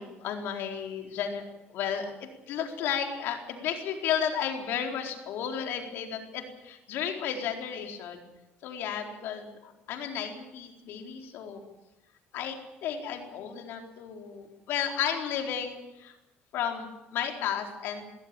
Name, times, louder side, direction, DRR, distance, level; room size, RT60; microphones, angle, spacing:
voice 1, 0.0-8.2 8.6-11.6 12.3-12.6 12.8-16.1 16.5-18.1, left 8 dB, 75° left, 3 dB, 4.2 m, -33 dB
22.5 x 16.5 x 9.1 m, 0.97 s
cardioid pair, 105°, 4 cm